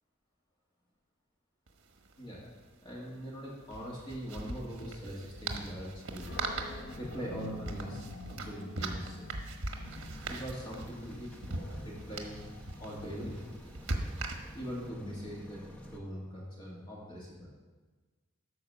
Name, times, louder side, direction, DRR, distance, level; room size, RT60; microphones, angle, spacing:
sound 1, 1.7-1.8 2.0-2.1 3.6-14.8, right 2 dB, 85° right, 1.2 m, -40 dB
voice 1, 2.2-2.5 2.8-6.4 7.0-9.3 9.9-11.3 11.8-12.4 12.8-13.5 14.5-17.5, equal, 25° left, -5 dB, 2.0 m, -42 dB
Animal, 6.1-13.2, left 2 dB, 55° left, 0.8 m, -47 dB
sound 2, 9.8-16.0, equal, 5° left, 0.8 m, -50 dB
12.0 x 4.7 x 6.8 m, 1.3 s
head